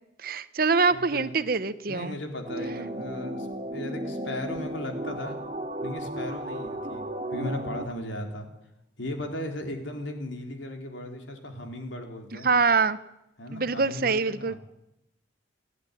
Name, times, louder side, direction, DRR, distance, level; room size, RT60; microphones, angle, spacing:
voice 1, 0.2-2.2 12.4-13.0 13.5-14.5, right 4 dB, 50° right, 14 dB, 0.9 m, -24 dB
voice 2, 0.9-1.3 1.9-5.4 5.8-8.5 9.0-12.5 13.4-14.6, left 1 dB, 75° left, 3 dB, 3.9 m, -36 dB
sound 1, 2.4-7.9, right 1 dB, 30° right, 2.5 m, -34 dB
29.5 x 11.0 x 10.0 m, 0.89 s
head